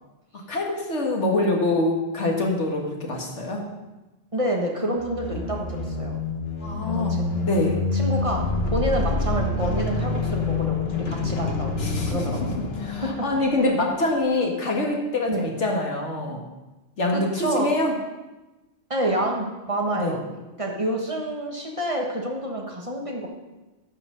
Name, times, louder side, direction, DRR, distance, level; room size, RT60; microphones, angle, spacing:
voice 1, 0.5-3.6 6.6-7.8 11.8-12.2 12.8-16.4 17.0-17.9 19.9-20.1, left 2 dB, 80° left, 0 dB, 2.0 m, -25 dB
voice 2, 4.3-6.1 6.9-7.2 7.9-8.4 8.7-12.6 12.9-13.1 15.3-15.5 17.1-17.7 18.9-23.3, right 1 dB, 30° right, 0 dB, 1.4 m, -28 dB
sound 1, 5.0-13.8, left 3 dB, 60° left, 1.2 m, -27 dB
10.0 x 5.9 x 6.6 m, 1.1 s
omnidirectional pair, 1.2 m